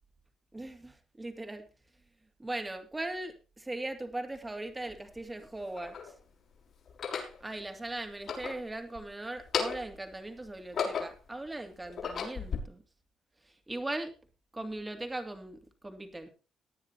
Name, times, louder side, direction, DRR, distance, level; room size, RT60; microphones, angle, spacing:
voice 1, 0.5-1.7 2.4-6.0 7.4-12.8 13.5-14.1 14.5-16.3, right 2 dB, 15° right, 6 dB, 2.6 m, -39 dB
sound 1, 4.4-4.5 5.3-6.1 6.9-7.4 8.1-9.0 9.4-10.0 10.5-11.3 11.8-12.6, left 6 dB, 60° left, 5.7 m, -35 dB
19.0 x 9.6 x 2.9 m, 0.34 s
cardioid pair, 90°, 0 cm